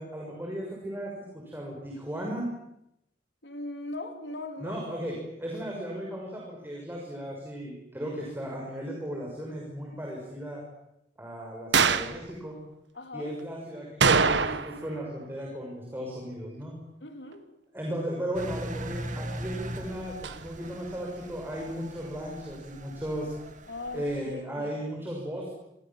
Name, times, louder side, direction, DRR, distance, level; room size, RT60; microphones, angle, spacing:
voice 1, 0.0-2.5 4.6-10.6 11.2-12.5 13.1-16.7 17.7-23.3 23.9-25.5, equal, 15° right, -2 dB, 6.6 m, -36 dB
voice 2, 3.4-4.8 12.9-13.3 17.0-17.5 23.7-24.1 24.6-24.7, left 2 dB, 75° left, 6 dB, 3.5 m, -39 dB
sound 1, 11.7-12.2 14.0-14.9 15.1-15.2 20.2-20.4, right 5 dB, 85° right, 1.5 m, -23 dB
Engine, 18.3-24.2, right 1 dB, 45° right, 2.8 m, -40 dB
27.5 x 25.5 x 7.5 m, 0.82 s
head